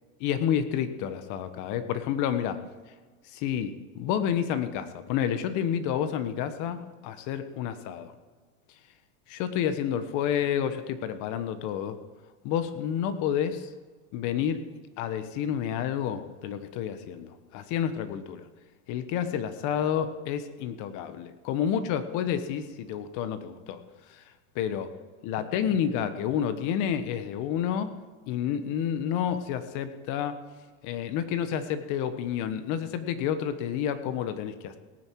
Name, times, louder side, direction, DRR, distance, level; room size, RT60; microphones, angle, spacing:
voice 1, 0.2-2.6 3.3-8.1 9.3-12.0 12.4-13.7 14.1-14.7 15.0-18.4 18.9-23.8 24.5-24.9 25.2-27.9 28.3-30.3 30.8-34.8, left 9 dB, 45° left, 11 dB, 1.3 m, -29 dB
18.0 x 9.3 x 4.7 m, 1.4 s
supercardioid pair, 135°, 43 cm